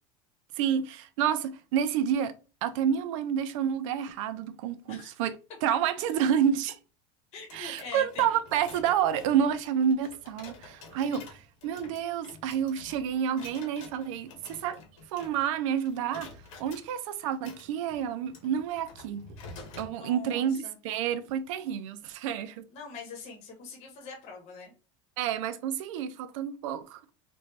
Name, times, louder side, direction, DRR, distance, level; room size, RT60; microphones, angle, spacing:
voice 1, 0.6-2.3 2.6-5.3 5.6-6.7 7.5-14.8 15.1-16.3 16.6-19.3 19.8-22.6 25.2-27.0, right 8 dB, 75° right, 0.4 m, -29 dB
sound 1, 7.3-15.6 15.9-16.9 17.3-19.9, left 3 dB, 80° left, 1.3 m, -49 dB
voice 2, 7.3-8.3 19.9-20.8 22.7-24.7, left 4 dB, 40° left, 1.0 m, -43 dB
3.0 x 2.6 x 3.2 m
supercardioid pair, 160°, 16 cm